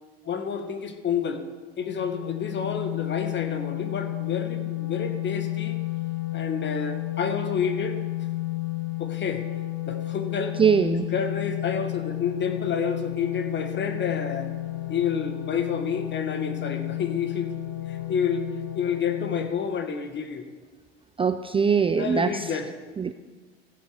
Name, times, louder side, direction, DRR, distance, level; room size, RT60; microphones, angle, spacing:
voice 1, 0.2-1.4 1.8-5.8 6.3-8.0 9.0-9.4 9.9-10.6 11.1-14.5 14.9-17.5 17.9-18.5 18.7-20.4 22.0-22.7, left 6 dB, 35° left, 8 dB, 1.5 m, -29 dB
sound 1, 1.8-19.5, left 16 dB, 75° left, 1.2 m, -32 dB
voice 2, 10.6-11.1 21.2-22.6 23.0-23.1, right 6 dB, 20° right, 9 dB, 0.5 m, -22 dB
15.0 x 7.6 x 5.0 m, 1.4 s
hypercardioid pair, 85°, 31 cm